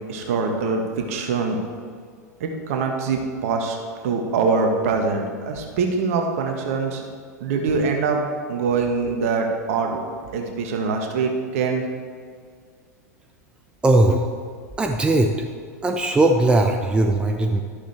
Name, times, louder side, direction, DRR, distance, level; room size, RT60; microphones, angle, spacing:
voice 1, 0.1-0.8 1.1-1.6 2.4-3.8 4.0-7.0 7.4-8.2 8.5-10.0 10.3-11.8, right 4 dB, 55° right, 3 dB, 1.6 m, -23 dB
voice 2, 13.8-14.3 14.8-15.3 15.8-17.6, right 2 dB, 10° right, 5 dB, 0.7 m, -18 dB
12.0 x 12.0 x 3.4 m, 2.1 s
figure-of-eight pair, 90°, 9 cm